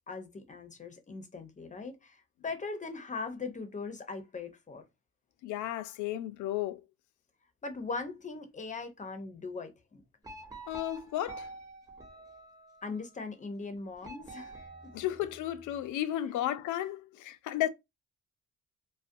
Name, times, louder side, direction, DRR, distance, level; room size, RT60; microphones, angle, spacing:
voice 1, 0.1-4.9 7.6-10.0 12.8-14.6 14.8-15.0, left 4 dB, 25° left, 0.6 m, -40 dB
voice 2, 5.4-6.8 10.7-11.5 14.9-17.7, left 13 dB, 85° left, 0.4 m, -33 dB
sound 1, 10.2-12.9 14.0-15.8, right 2 dB, 10° right, 0.9 m, -48 dB
2.4 x 2.2 x 2.5 m
cardioid pair, 90°, 30 cm